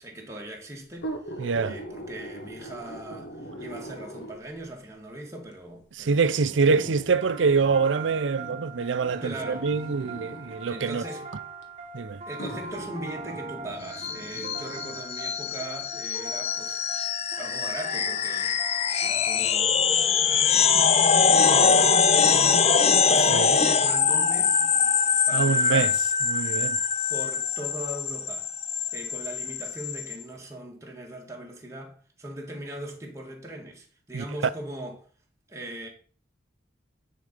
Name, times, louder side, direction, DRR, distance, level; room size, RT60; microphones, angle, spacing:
voice 1, 0.0-6.8 9.2-9.7 10.7-11.3 12.3-16.8 17.4-20.6 21.1-24.6 25.3-25.9 27.1-28.5 28.9-35.0 35.5-35.9, right 1 dB, 15° right, 1.6 m, -40 dB
sound 1, 0.9-4.6 5.5-5.6 6.7-10.6 11.6-11.7 12.4-15.0 15.5-15.6, right 1 dB, 80° left, 1.5 m, -41 dB
voice 2, 1.4-1.8 6.0-11.0 11.9-12.2 23.3-23.6 25.3-25.9 26.3-26.8 34.1-34.2, right 5 dB, 80° right, 0.5 m, -25 dB
sound 2, 7.1-21.0, right 3 dB, 35° right, 0.9 m, -41 dB
sound 3, 13.9-30.2, left 6 dB, 35° left, 0.5 m, -23 dB
9.9 x 4.0 x 5.1 m
head